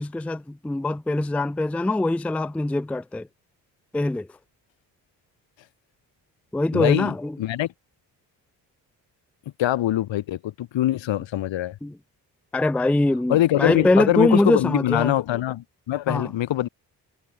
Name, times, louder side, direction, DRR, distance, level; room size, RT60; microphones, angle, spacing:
voice 1, 0.0-3.3 3.9-4.3 6.5-7.4 11.8-12.0 12.5-15.2 16.1-16.3, left 2 dB, 5° left, 0.4 m, -23 dB
voice 2, 6.7-7.7 9.6-11.8 13.3-16.7, left 13 dB, 70° left, 1.8 m, -23 dB
hypercardioid pair, 45°, 47 cm